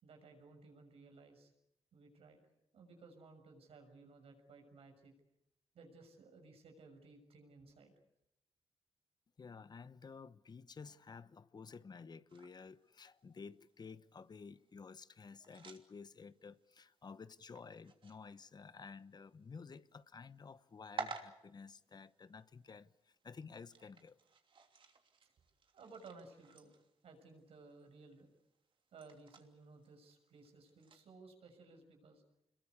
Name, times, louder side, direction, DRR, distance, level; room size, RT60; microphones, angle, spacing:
voice 1, 0.0-1.5 1.9-2.4 2.7-5.1 5.7-7.9 25.2-25.3 25.7-26.7 27.0-28.3 28.9-32.2, right 3 dB, 80° right, 6.7 m, -58 dB
voice 2, 9.4-24.2, left 5 dB, 45° left, 1.0 m, -53 dB
sound 1, 12.3-31.1, right 5 dB, 60° right, 3.0 m, -55 dB
27.0 x 21.5 x 8.3 m
cardioid pair, 80°, 10 cm